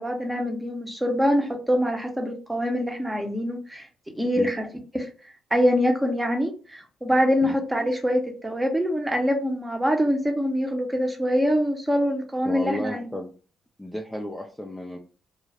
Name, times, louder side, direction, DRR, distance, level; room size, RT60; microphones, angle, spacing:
voice 1, 0.0-3.9 4.1-4.7 4.9-5.1 5.5-13.1, equal, 15° right, 3 dB, 0.9 m, -24 dB
voice 2, 12.5-13.3 13.8-15.0, equal, 5° left, 0 dB, 0.5 m, -32 dB
2.4 x 2.3 x 3.3 m, 0.37 s
hypercardioid pair, 45°, 0 cm